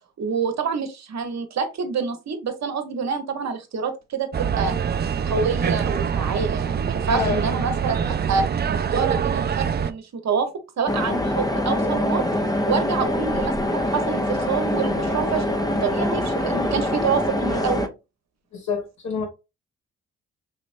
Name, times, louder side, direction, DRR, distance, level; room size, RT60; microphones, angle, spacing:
voice 1, 0.2-4.8 5.3-10.5 10.8-12.3 12.7-17.9, right 6 dB, 50° right, 1.1 m, -27 dB
sound 1, 4.3-9.9, right 7 dB, 30° right, 0.5 m, -24 dB
voice 2, 7.1-7.4 16.6-16.7 18.5-19.3, left 5 dB, 55° left, 1.5 m, -27 dB
sound 2, 10.9-17.9, left 1 dB, 10° left, 0.8 m, -24 dB
5.4 x 3.0 x 2.6 m
hypercardioid pair, 45°, 33 cm